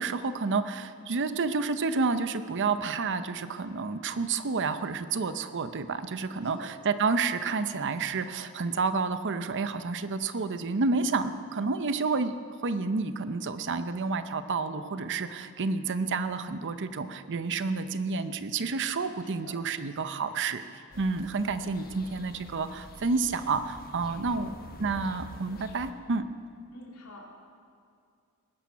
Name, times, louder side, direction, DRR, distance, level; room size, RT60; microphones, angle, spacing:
voice 1, 0.0-20.6 20.9-24.5 24.8-26.2, right 4 dB, 55° right, 11 dB, 0.7 m, -30 dB
voice 2, 6.3-6.7 19.2-19.6 21.4-21.6 24.4-24.7 26.7-27.3, left 1 dB, 80° left, -2 dB, 3.2 m, -48 dB
sound 1, 20.9-25.9, left 1 dB, 45° left, 1.2 m, -47 dB
20.0 x 10.5 x 5.8 m, 2.3 s
head